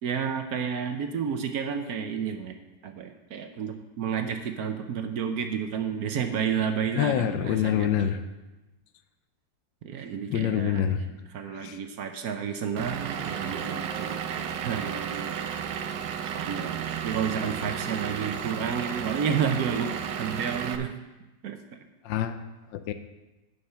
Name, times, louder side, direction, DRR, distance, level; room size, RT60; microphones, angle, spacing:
voice 1, 0.0-2.6 2.8-8.1 9.8-15.3 16.3-20.9 21.4-21.6, right 7 dB, 65° right, 6 dB, 1.1 m, -31 dB
voice 2, 7.0-8.2 10.3-11.0 11.4-11.8 22.0-22.4 22.7-22.9, left 10 dB, 85° left, 9 dB, 1.3 m, -26 dB
Vehicle / Engine, 12.8-20.8, right 8 dB, 80° right, 1.4 m, -33 dB
9.7 x 5.7 x 5.7 m, 1.1 s
omnidirectional pair, 2.0 m